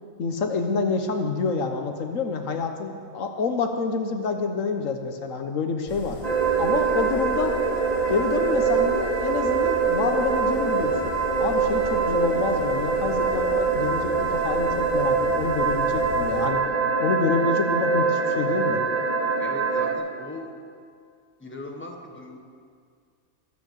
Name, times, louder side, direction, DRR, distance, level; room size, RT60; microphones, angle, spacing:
voice 1, 0.2-6.2 6.6-7.5 8.1-11.0 11.4-16.6 17.0-18.8, left 4 dB, 80° left, 5 dB, 1.4 m, -27 dB
sound 1, 5.9-16.5, left 2 dB, 40° left, 2.4 m, -39 dB
sound 2, 6.2-19.9, right 4 dB, 30° right, 1.2 m, -24 dB
voice 2, 19.4-20.5 21.4-22.4, left 2 dB, 10° left, 1 dB, 1.4 m, -39 dB
21.5 x 7.7 x 6.5 m, 2.1 s
omnidirectional pair, 1.3 m